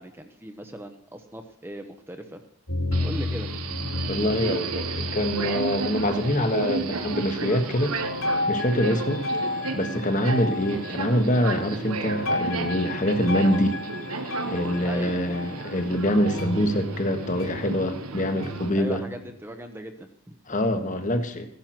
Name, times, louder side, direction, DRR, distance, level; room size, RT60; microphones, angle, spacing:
voice 1, 0.0-2.4 3.0-3.5 14.8-15.2 18.8-20.4, right 1 dB, 10° right, 6 dB, 0.8 m, -38 dB
sound 1, 2.7-6.5 6.8-7.4 8.0-19.3, left 1 dB, 70° left, 2.7 m, -32 dB
Subway metro underground, 2.9-18.7, right 3 dB, 90° right, 1.2 m, -33 dB
voice 2, 4.1-8.0 8.5-9.2 9.7-13.8 14.4-19.0 20.5-21.4, equal, 35° left, 7 dB, 1.3 m, -25 dB
15.5 x 11.0 x 6.0 m, 0.68 s
head